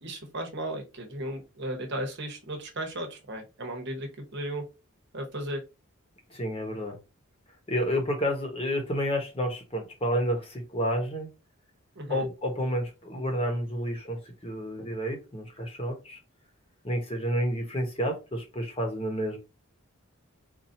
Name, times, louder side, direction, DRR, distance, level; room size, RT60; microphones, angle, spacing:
voice 1, 0.0-4.6 5.1-5.6 11.9-12.2, right 1 dB, 55° right, 1.1 m, -35 dB
voice 2, 6.3-7.0 7.7-11.3 12.1-16.2 16.8-19.4, equal, 25° left, 1.0 m, -30 dB
4.3 x 2.6 x 2.7 m
head